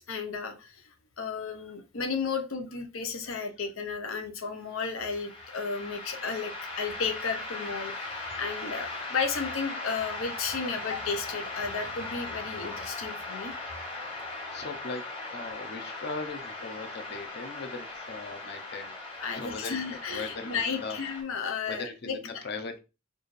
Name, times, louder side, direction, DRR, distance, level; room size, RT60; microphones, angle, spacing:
voice 1, 0.1-0.8 1.2-13.5 19.2-22.2, left 5 dB, 90° left, 5 dB, 0.8 m, -33 dB
sound 1, 4.8-21.2, left 3 dB, 25° left, 1.3 m, -39 dB
voice 2, 14.5-15.0 15.3-18.9 19.3-21.0 21.7-22.8, left 3 dB, 55° left, 7 dB, 0.7 m, -39 dB
4.5 x 2.6 x 3.2 m, 0.29 s
head